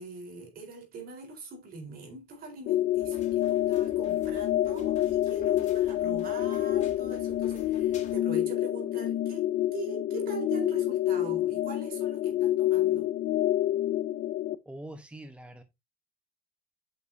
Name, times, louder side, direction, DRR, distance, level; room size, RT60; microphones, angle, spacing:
voice 1, 0.0-13.1, right 3 dB, 60° right, 4.1 m, -42 dB
sound 1, 2.7-14.5, left 13 dB, 75° left, 0.6 m, -28 dB
sound 2, 2.9-8.2, left 2 dB, 45° left, 2.7 m, -52 dB
voice 2, 14.6-15.6, right 1 dB, 5° right, 1.0 m, -43 dB
8.4 x 6.2 x 2.7 m
cardioid pair, 110°, 17 cm